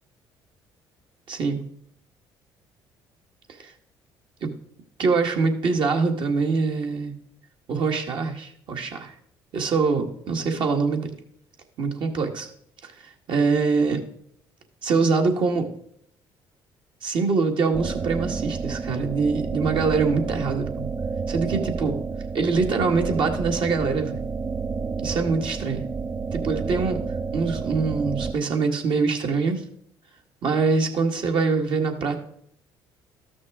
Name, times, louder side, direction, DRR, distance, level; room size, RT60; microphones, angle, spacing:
voice 1, 1.3-1.7 3.6-3.7 4.4-4.5 5.0-7.1 7.7-9.1 9.5-11.1 11.8-12.5 12.8-14.0 14.8-15.7 17.0-20.9 21.3-22.0 22.3-24.2 25.0-25.8 26.3-27.0 27.3-29.6 30.4-32.2, right 4 dB, 60° right, 3 dB, 1.5 m, -24 dB
sound 1, 17.7-28.3, right 5 dB, 30° right, 0.4 m, -30 dB
13.0 x 6.2 x 3.6 m, 0.67 s
supercardioid pair, 75°, 9 cm